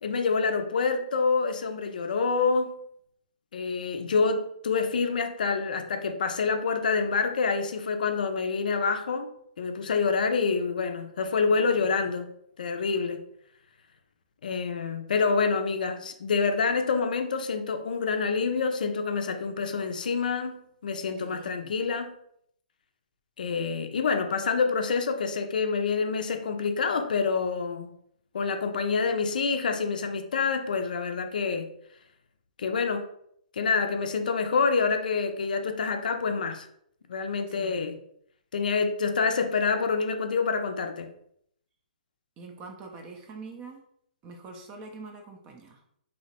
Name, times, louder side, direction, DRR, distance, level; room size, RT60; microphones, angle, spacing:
voice 1, 0.0-2.8 3.5-9.3 9.6-12.3 12.6-13.2 14.4-22.1 23.4-27.9 28.3-31.7 32.6-33.1 33.5-36.7 37.1-38.0 38.5-41.1, left 5 dB, 70° left, 7 dB, 0.4 m, -27 dB
voice 2, 11.5-11.9 21.2-21.7 37.5-38.0 42.4-43.8 44.2-45.8, right 3 dB, 25° right, 3 dB, 0.4 m, -45 dB
2.8 x 2.0 x 2.8 m, 0.70 s
hypercardioid pair, 130°, 5 cm